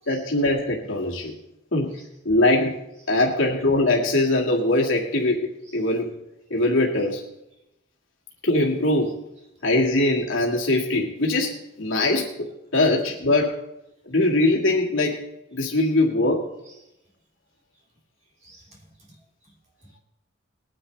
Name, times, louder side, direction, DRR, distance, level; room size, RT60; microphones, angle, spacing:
voice 1, 0.1-1.3 1.7-1.9 2.2-2.8 3.1-6.1 6.5-7.2 8.4-9.1 9.6-13.6 14.1-15.2 15.5-16.5, left 2 dB, 80° left, 2.0 m, -22 dB
voice 2, 18.4-19.2 19.4-19.5 19.8-19.9, right 2 dB, 35° right, 2.6 m, -53 dB
20.5 x 9.8 x 3.3 m
head